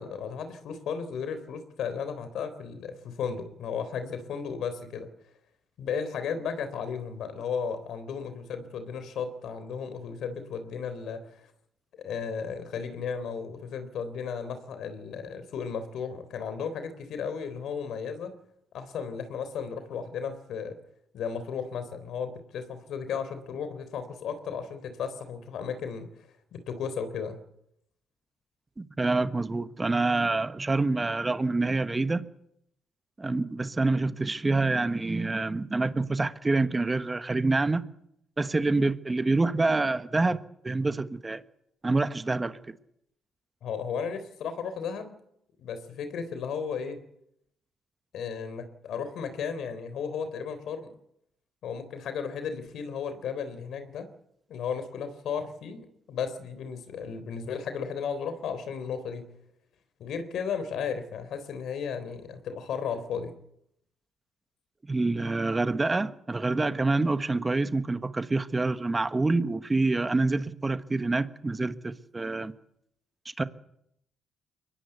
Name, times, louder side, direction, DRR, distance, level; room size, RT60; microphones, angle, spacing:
voice 1, 0.0-5.1 5.8-11.3 12.0-18.4 18.7-20.8 21.1-26.1 26.5-27.4 43.6-45.1 45.6-47.0 48.1-50.9 51.6-54.1 54.5-59.3 60.0-63.4, left 6 dB, 75° left, 3.8 m, -34 dB
voice 2, 28.8-32.3 33.2-37.8 38.4-41.4 41.8-42.7 64.9-72.5 73.4-73.5, right 3 dB, 20° right, 1.2 m, -27 dB
23.0 x 19.0 x 8.2 m
cardioid pair, 90°, 0 cm